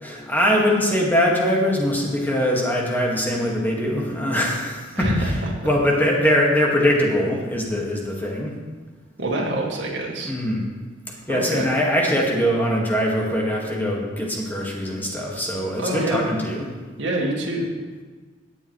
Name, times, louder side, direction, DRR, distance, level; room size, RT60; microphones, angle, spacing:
voice 1, 0.0-5.4 5.6-8.5 10.2-10.7 11.1-16.7, equal, 10° left, -2 dB, 1.7 m, -22 dB
voice 2, 9.2-10.3 11.3-11.7 15.8-16.2 17.0-17.7, right 1 dB, 70° right, -2 dB, 2.1 m, -25 dB
18.0 x 7.2 x 3.1 m, 1.4 s
head